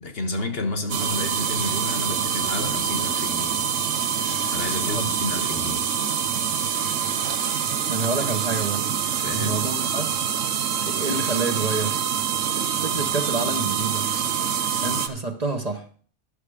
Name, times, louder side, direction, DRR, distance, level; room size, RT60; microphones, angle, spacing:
voice 1, 0.0-3.6 4.5-5.9 9.1-9.7, left 2 dB, 55° left, 1.2 m, -31 dB
sound 1, 0.9-15.1, right 7 dB, 85° right, 1.1 m, -25 dB
voice 2, 7.9-8.9 9.3-10.1 10.9-12.0 12.8-14.1 14.8-15.9, right 3 dB, 35° right, 1.1 m, -28 dB
11.0 x 6.6 x 4.8 m
omnidirectional pair, 1.3 m